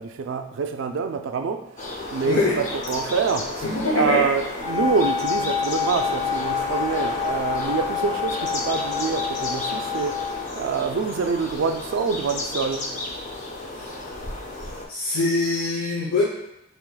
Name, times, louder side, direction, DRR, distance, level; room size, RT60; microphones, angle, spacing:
voice 1, 0.0-1.6 2.1-10.2 10.6-12.9, right 5 dB, 65° right, 7 dB, 0.3 m, -26 dB
sound 1, 1.8-14.9, left 2 dB, 35° left, 0.5 m, -32 dB
voice 2, 2.2-2.6 3.6-4.2 13.8-13.9 14.9-16.2, left 3 dB, 80° left, -3 dB, 0.6 m, -23 dB
sound 2, 4.6-10.4, left 8 dB, 10° right, 0.6 m, -28 dB
4.7 x 3.4 x 2.2 m, 0.86 s
head